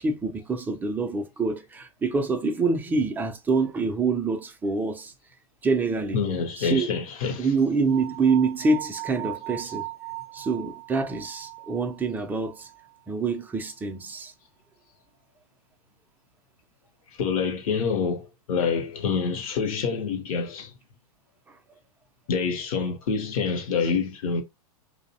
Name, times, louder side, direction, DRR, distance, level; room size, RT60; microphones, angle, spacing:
voice 1, 0.0-5.1 5.6-6.3 6.6-6.9 7.4-9.9 10.3-12.7 13.1-14.3 21.5-21.6, right 4 dB, 10° right, 0.4 m, -26 dB
voice 2, 6.1-7.5 17.2-20.7 22.3-24.4, left 5 dB, 65° left, 0.6 m, -26 dB
sound 1, 7.9-13.0, right 25 dB, 75° right, 0.5 m, -39 dB
2.5 x 2.0 x 2.6 m
hypercardioid pair, 110°, 19 cm